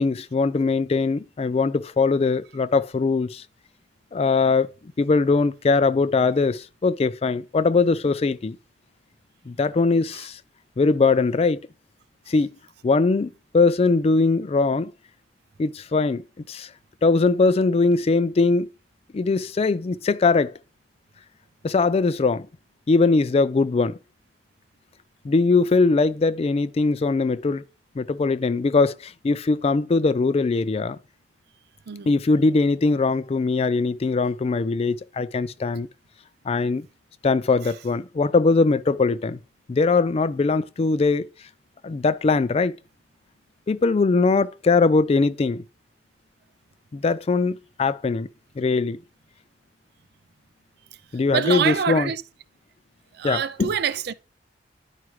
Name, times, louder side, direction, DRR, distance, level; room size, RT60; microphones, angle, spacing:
voice 1, 0.0-3.4 4.1-4.7 5.0-8.6 9.5-10.4 10.8-11.6 12.3-12.5 12.8-14.9 15.6-16.7 17.0-18.7 19.1-20.5 21.6-22.5 22.9-24.0 25.2-27.6 28.0-31.0 32.1-35.9 36.5-36.9 37.2-39.4 39.7-41.3 41.8-42.8 43.7-45.6 46.9-48.3 48.6-49.0 51.1-52.1 53.2-53.7, left 3 dB, 35° left, 0.3 m, -21 dB
voice 2, 51.3-52.2 53.1-54.1, right 7 dB, 60° right, 0.4 m, -25 dB
11.0 x 4.8 x 3.1 m
head